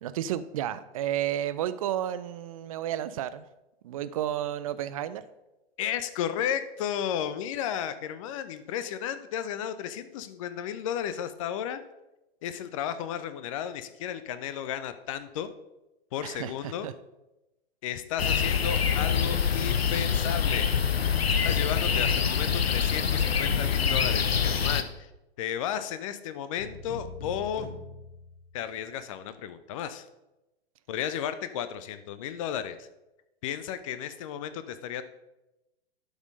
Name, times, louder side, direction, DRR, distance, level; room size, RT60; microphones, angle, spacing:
voice 1, 0.0-3.4 3.8-5.2 16.2-16.9, right 11 dB, 35° right, 14 dB, 0.4 m, -32 dB
voice 2, 5.8-11.8 12.4-15.5 16.1-16.9 17.8-20.7 21.2-25.1 25.4-27.7 28.5-30.1 30.9-32.9 33.4-35.0, left 9 dB, 30° left, 12 dB, 0.6 m, -33 dB
sound 1, 18.2-24.8, left 7 dB, 70° left, 0.8 m, -25 dB
sound 2, 26.6-28.8, left 4 dB, 55° left, 2.8 m, -43 dB
11.5 x 4.4 x 5.3 m, 0.98 s
figure-of-eight pair, 110°, 31 cm